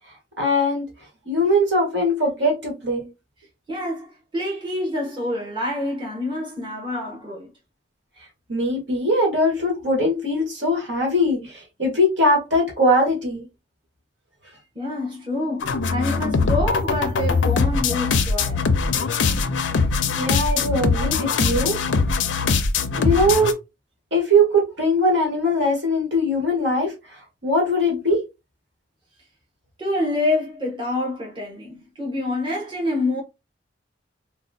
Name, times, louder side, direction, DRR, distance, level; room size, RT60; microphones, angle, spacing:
voice 1, 0.4-0.9 1.3-3.1 8.5-13.5 20.2-21.8 23.0-23.5 24.1-26.9 27.4-28.2, equal, 70° right, 1.6 m, -21 dB
voice 2, 3.7-7.5 14.7-18.7 20.9-21.0 29.8-33.2, left 2 dB, 25° right, 1.2 m, -27 dB
sound 1, 15.6-23.5, left 4 dB, 75° left, 0.5 m, -21 dB
4.0 x 2.3 x 2.6 m
head